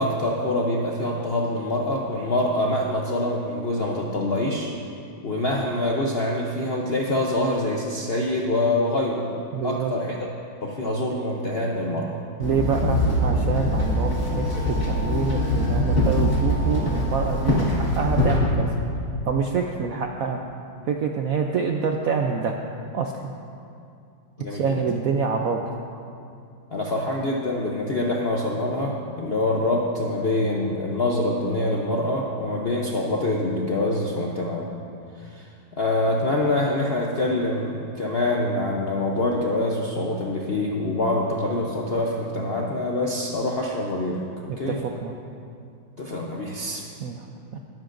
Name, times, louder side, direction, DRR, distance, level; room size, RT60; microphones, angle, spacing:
voice 1, 0.0-4.7 5.2-9.3 9.6-10.2 10.6-12.1 24.4-24.8 26.7-34.7 35.2-35.5 35.8-44.8 46.0-46.8, left 1 dB, 60° left, -2 dB, 0.6 m, -25 dB
voice 2, 9.5-9.9 12.4-18.7 19.2-20.4 20.9-22.6 22.9-23.3 24.5-25.6 44.5-44.7 45.0-45.1 47.0-47.2 47.5-47.6, right 5 dB, 70° right, 2 dB, 0.8 m, -26 dB
Walk footsteps / Chatter / Hiss, 12.4-18.4, left 1 dB, 40° left, 2.0 m, -23 dB
19.5 x 10.5 x 2.6 m, 2.5 s
omnidirectional pair, 2.1 m